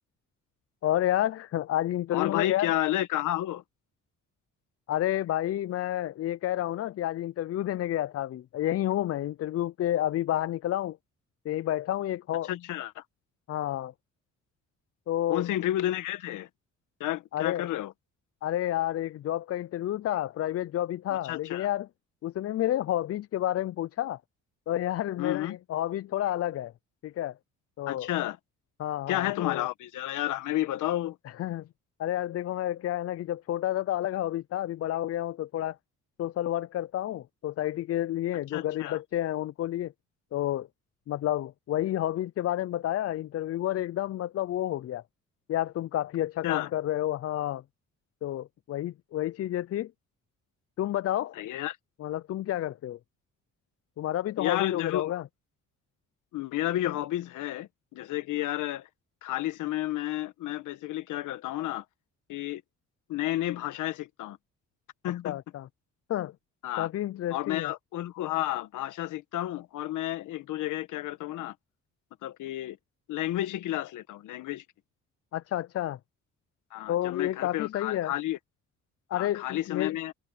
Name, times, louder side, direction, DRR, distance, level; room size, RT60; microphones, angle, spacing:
voice 1, 0.8-2.7 4.9-11.0 11.4-12.5 13.5-13.9 15.1-15.5 17.3-17.7 18.4-21.9 22.2-24.2 24.7-26.7 27.0-27.3 27.8-28.1 28.8-29.6 31.4-31.7 32.0-35.8 36.2-39.9 40.3-40.7 41.1-45.0 45.5-47.6 48.2-49.9 50.8-51.4 52.0-53.0 54.0-55.2 65.2-65.7 66.1-66.3 66.8-67.7 75.3-76.0 76.9-78.1 79.1-80.0, left 13 dB, 50° left, 0.5 m, -30 dB
voice 2, 2.1-3.6 12.5-13.0 15.3-16.5 17.0-17.9 21.1-21.7 25.2-25.6 27.9-28.4 29.1-31.2 38.5-39.0 46.4-46.7 51.3-51.8 54.4-55.2 56.3-58.9 59.2-61.8 62.3-62.6 63.1-64.4 65.0-65.4 66.6-66.9 67.3-71.5 72.2-72.8 73.1-74.6 76.7-78.4 79.1-80.1, left 14 dB, 85° left, 1.5 m, -31 dB
cardioid pair, 90°, 30 cm